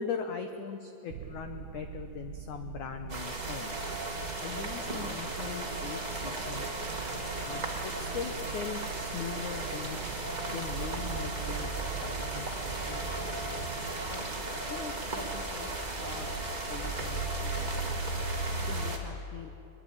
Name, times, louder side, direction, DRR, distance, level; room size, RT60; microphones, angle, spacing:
voice 1, 0.0-3.8 4.4-6.9 7.4-10.0 10.5-13.0 14.1-14.2 14.7-16.3 16.7-18.0 18.5-19.5, left 7 dB, 85° left, 6 dB, 1.7 m, -41 dB
sound 1, 1.1-14.4, right 8 dB, 75° right, 1.8 m, -44 dB
sound 2, 3.1-19.0, right 2 dB, 25° right, 0.9 m, -36 dB
sound 3, 10.7-18.9, right 3 dB, 10° left, 4.5 m, -38 dB
22.5 x 22.0 x 8.7 m, 2.7 s
omnidirectional pair, 4.9 m